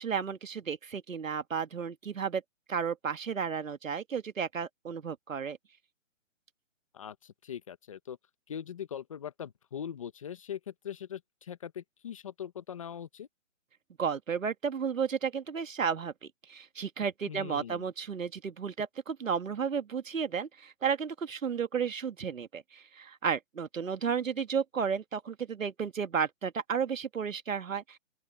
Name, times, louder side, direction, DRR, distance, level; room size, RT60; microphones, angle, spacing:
voice 1, 0.0-2.4 2.7-5.6 14.0-16.1 16.5-28.0, right 6 dB, 80° right, 1.9 m, -33 dB
voice 2, 6.9-8.2 8.5-13.3 17.3-17.9, left 9 dB, 25° left, 1.1 m, -41 dB
open air
hypercardioid pair, 170°, 39 cm